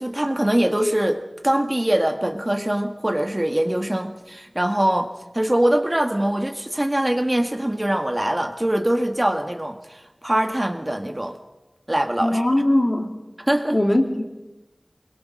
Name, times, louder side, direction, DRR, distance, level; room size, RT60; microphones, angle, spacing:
voice 1, 0.0-11.4 11.9-12.4 13.4-13.8, right 1 dB, 30° right, 5 dB, 1.7 m, -23 dB
voice 2, 12.2-13.1 13.7-14.3, left 1 dB, 45° left, 3 dB, 2.9 m, -20 dB
24.5 x 21.5 x 6.3 m, 1.1 s
wide cardioid pair, 40°, 0 cm